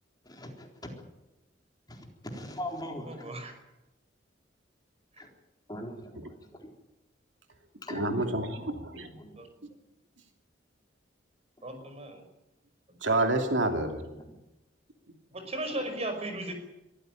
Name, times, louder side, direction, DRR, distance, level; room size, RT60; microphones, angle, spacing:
voice 1, 0.2-0.9 1.9-3.2 5.2-5.3 5.7-6.3 6.6-6.7 7.8-8.2 8.5-8.6 8.9-9.3 11.8-11.9 14.1-14.3, left 1 dB, 20° left, 2 dB, 3.9 m, -40 dB
voice 2, 3.1-3.5 9.4-9.5 11.6-12.2 15.3-16.5, right 1 dB, 35° right, 6 dB, 5.4 m, -36 dB
voice 3, 7.9-9.1 13.0-14.0, right 2 dB, 75° right, 4 dB, 2.9 m, -28 dB
23.0 x 15.0 x 9.1 m, 0.96 s
head